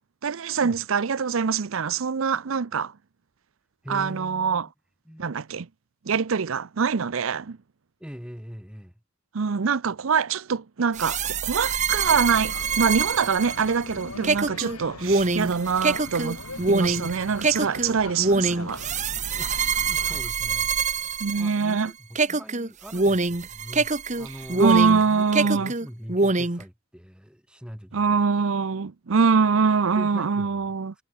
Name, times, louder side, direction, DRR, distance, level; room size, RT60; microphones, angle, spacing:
voice 1, 0.2-2.9 3.9-4.7 5.2-5.7 6.1-7.6 9.3-16.4 16.7-18.8 21.2-21.9 24.6-25.7 27.9-30.9, right 5 dB, 65° right, 0.6 m, -24 dB
voice 2, 3.8-4.7 5.1-5.4 8.0-8.9 19.4-23.9 24.2-28.2 29.9-30.7, equal, 5° right, 5.6 m, -42 dB
sound 1, 10.9-21.8 22.2-25.0 25.3-26.6, right 4 dB, 30° right, 1.3 m, -25 dB
sound 2, 12.0-20.2, left 2 dB, 85° left, 6.0 m, -41 dB
head